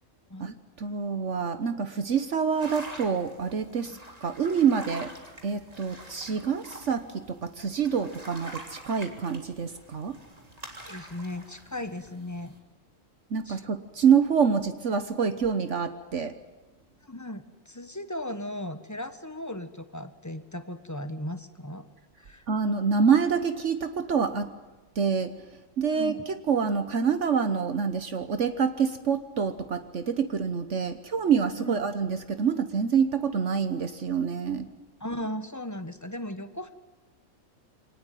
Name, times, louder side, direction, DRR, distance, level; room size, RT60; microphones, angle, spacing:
voice 1, 0.4-5.1 5.4-10.2 13.3-16.3 22.5-24.5 24.9-25.3 25.8-34.7, right 6 dB, 65° right, 10 dB, 1.4 m, -26 dB
sound 1, 2.6-12.6, right 1 dB, 30° right, 3.4 m, -46 dB
voice 2, 10.8-12.5 13.4-13.6 17.0-21.8 22.2-22.4 25.9-26.2 31.6-31.8 35.0-36.7, left 1 dB, 15° left, 10 dB, 1.3 m, -37 dB
25.0 x 19.0 x 9.4 m, 1.2 s
omnidirectional pair, 1.4 m